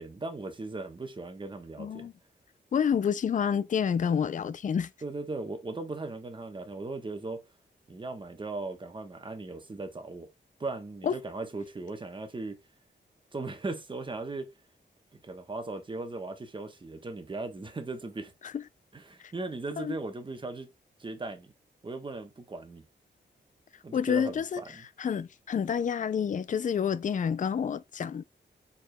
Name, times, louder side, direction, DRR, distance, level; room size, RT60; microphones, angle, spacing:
voice 1, 0.0-2.1 5.0-7.4 7.9-10.3 10.6-12.6 13.3-14.5 15.2-18.3 18.9-20.7 21.0-21.5 21.8-22.8 23.8-24.8, right 3 dB, 25° right, 1.1 m, -38 dB
voice 2, 1.8-2.1 2.7-4.9 11.0-11.2 18.4-18.6 19.2-19.3 19.8-20.0 23.9-24.6 25.0-28.2, left 7 dB, 45° left, 0.4 m, -28 dB
4.8 x 4.8 x 2.3 m
wide cardioid pair, 115°, 19 cm